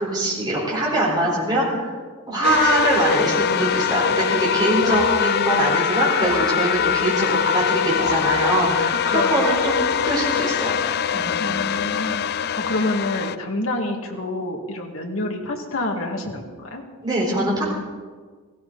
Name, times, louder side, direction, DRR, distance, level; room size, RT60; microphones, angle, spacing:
voice 1, 0.0-1.9 2.3-10.7 11.1-11.3 17.0-17.6, right 1 dB, 20° right, -5 dB, 4.4 m, -23 dB
Nightmare-Level Unsettling Horror Suspense, 2.4-13.4, left 7 dB, 45° left, 0.3 m, -22 dB
sound 1, 4.8-5.8 6.2-7.2 8.0-9.0 9.5-10.3, right 2 dB, 60° right, 2.4 m, -35 dB
voice 2, 8.9-9.5 11.4-16.8, left 2 dB, 65° left, 2 dB, 1.9 m, -28 dB
17.5 x 15.5 x 4.0 m, 1.5 s
head